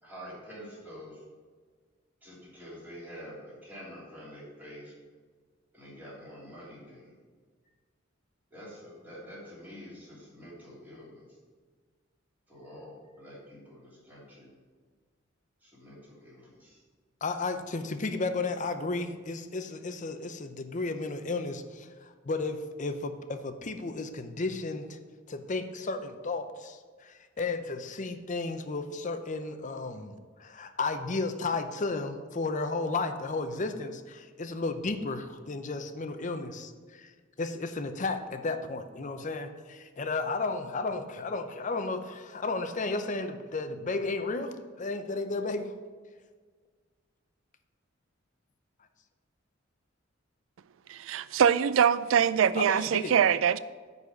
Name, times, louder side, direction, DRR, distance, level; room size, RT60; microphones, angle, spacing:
voice 1, 0.0-1.2 2.2-4.9 5.7-7.1 8.5-11.2 12.5-14.5 15.6-16.8, equal, 10° right, 3.0 m, -47 dB
voice 2, 17.2-25.0 25.3-37.1 37.4-45.7 52.6-53.2, left 3 dB, 40° left, 0.6 m, -33 dB
voice 3, 50.9-53.6, right 8 dB, 90° right, 0.4 m, -23 dB
9.7 x 4.2 x 6.9 m
head